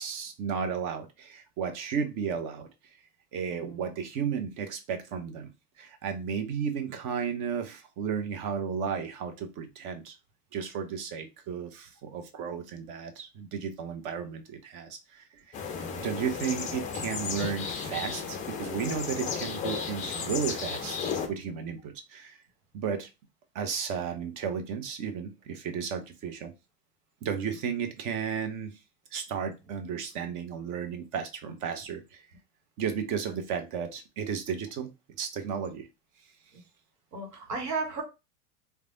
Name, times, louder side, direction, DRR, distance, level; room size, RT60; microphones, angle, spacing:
voice 1, 0.0-2.7 3.3-5.5 5.8-10.2 10.5-15.7 16.0-22.4 22.7-23.1 23.5-26.5 27.2-28.7 29.1-32.2 32.8-34.9 35.2-35.9, right 7 dB, 40° right, 7 dB, 0.8 m, -34 dB
voice 2, 3.5-3.8 33.3-33.4 37.1-38.0, right 4 dB, 85° right, 4 dB, 1.1 m, -34 dB
sound 1, 15.5-21.3, left 6 dB, 20° left, 0.4 m, -34 dB
3.2 x 2.2 x 2.6 m, 0.26 s
hypercardioid pair, 90°, 46 cm